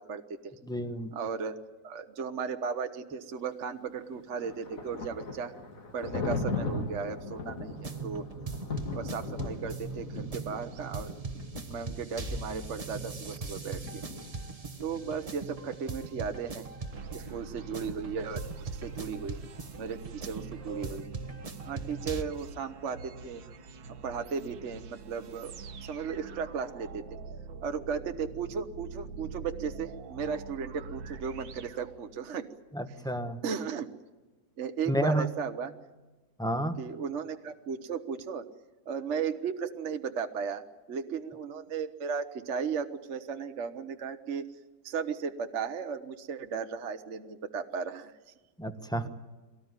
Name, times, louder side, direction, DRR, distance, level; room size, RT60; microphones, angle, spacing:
voice 1, 0.0-0.5 1.1-1.5 1.8-5.5 5.9-8.2 8.9-11.1 11.7-14.0 14.8-16.6 17.1-19.4 19.8-21.0 21.6-23.4 24.0-27.2 27.6-32.5 32.9-33.0 33.4-33.9 34.6-35.7 36.8-38.4 38.9-40.6 40.9-44.4 44.8-48.1, right 6 dB, 45° right, 8 dB, 1.2 m, -35 dB
voice 2, 0.6-1.1 32.7-33.4 34.9-35.3 36.4-36.8 48.6-49.1, right 1 dB, 5° left, 8 dB, 0.9 m, -30 dB
Thunder, 4.0-15.7, left 3 dB, 45° left, 2.3 m, -39 dB
sound 1, 7.7-22.2, right 4 dB, 25° right, 0.9 m, -40 dB
sound 2, 16.9-32.5, right 4 dB, 80° right, 2.0 m, -45 dB
23.5 x 18.0 x 9.7 m, 1.2 s
omnidirectional pair, 2.0 m